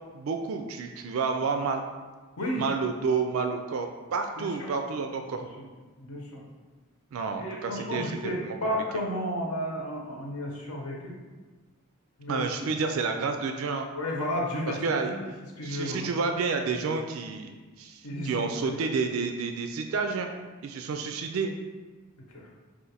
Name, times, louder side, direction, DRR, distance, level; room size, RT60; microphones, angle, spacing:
voice 1, 0.1-1.8 2.6-5.4 7.1-8.6 12.3-13.9 14.8-15.2 15.6-20.3 20.6-21.5, right 4 dB, 70° right, 5 dB, 0.3 m, -30 dB
voice 2, 4.4-4.7 5.3-5.6 6.0-6.4 7.4-11.1 12.2-12.5 13.9-15.3 15.6-16.1 18.0-18.8 22.3-22.5, equal, 85° left, -2 dB, 1.0 m, -33 dB
5.0 x 2.5 x 4.1 m, 1.3 s
head